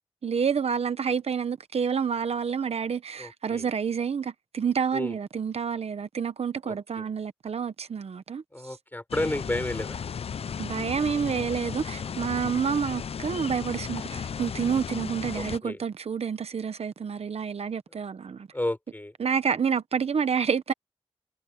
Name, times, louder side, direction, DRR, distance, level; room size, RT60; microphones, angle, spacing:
voice 1, 0.2-8.4 10.6-18.5 19.2-20.7, right 6 dB, 80° right, 0.9 m, -28 dB
voice 2, 3.2-3.7 4.9-5.2 6.6-7.0 8.5-10.0 15.3-15.8 18.5-19.1, left 1 dB, 20° left, 5.3 m, -32 dB
sound 1, 9.1-15.6, left 7 dB, 75° left, 0.5 m, -35 dB
wide cardioid pair, 80°, 10 cm